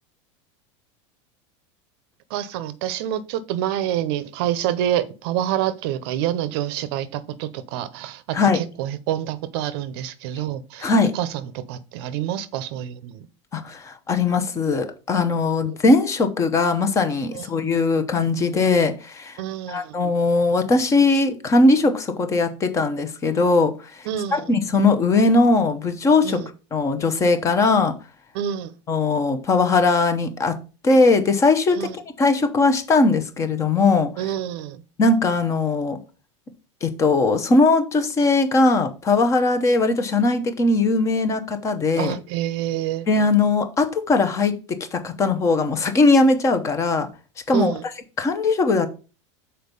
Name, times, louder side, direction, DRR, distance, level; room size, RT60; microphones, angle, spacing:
voice 1, 2.3-13.3 15.6-15.8 17.3-17.5 19.4-19.9 24.1-24.5 26.2-26.5 28.3-28.7 31.7-32.0 34.2-34.8 41.9-43.1 47.5-47.8, right 11 dB, 55° right, 0.7 m, -27 dB
voice 2, 10.8-11.1 13.5-19.4 19.7-26.4 26.7-27.9 28.9-30.6 30.8-31.8 32.2-34.1 35.0-36.0 36.8-42.1 43.1-47.1 47.5-47.7 48.2-48.9, left 3 dB, 20° left, 0.8 m, -19 dB
6.6 x 4.5 x 5.3 m
supercardioid pair, 160°, 15 cm